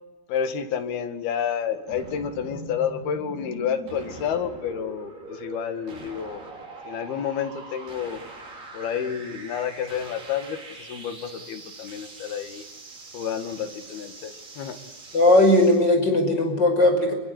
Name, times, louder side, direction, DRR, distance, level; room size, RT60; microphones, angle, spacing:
voice 1, 0.3-6.4 6.9-8.2 8.7-12.6 13.1-14.8, left 8 dB, 70° left, 7 dB, 3.9 m, -30 dB
sound 1, 1.9-15.8, right 3 dB, 70° right, 7.7 m, -42 dB
voice 2, 15.1-17.1, left 1 dB, 25° left, 5 dB, 5.9 m, -18 dB
26.0 x 22.5 x 9.6 m, 1.1 s
omnidirectional pair, 4.6 m